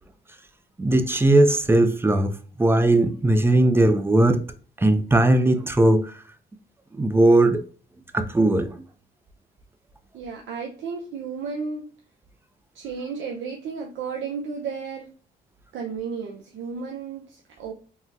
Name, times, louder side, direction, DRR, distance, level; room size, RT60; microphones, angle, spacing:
voice 1, 0.8-4.4 4.8-6.2 7.0-7.7 8.1-8.7, right 1 dB, 10° right, 9 dB, 0.4 m, -19 dB
voice 2, 10.1-11.9 12.7-15.1 15.7-17.7, right 5 dB, 75° right, 1 dB, 0.5 m, -33 dB
3.6 x 2.1 x 2.6 m, 0.38 s
cardioid pair, 90°, 20 cm